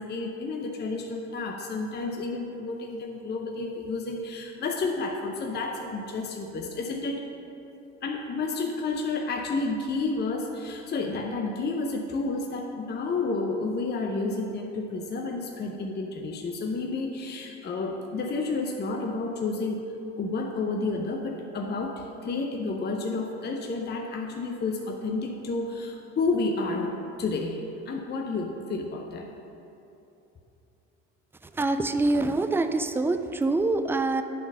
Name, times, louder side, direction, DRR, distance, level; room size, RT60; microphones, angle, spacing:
voice 1, 0.0-7.2 8.0-19.8 20.2-29.3, left 3 dB, 30° left, 2 dB, 0.7 m, -30 dB
voice 2, 31.5-34.2, right 2 dB, 5° right, 9 dB, 0.3 m, -25 dB
8.5 x 3.9 x 5.4 m, 2.9 s
hypercardioid pair, 70°, 32 cm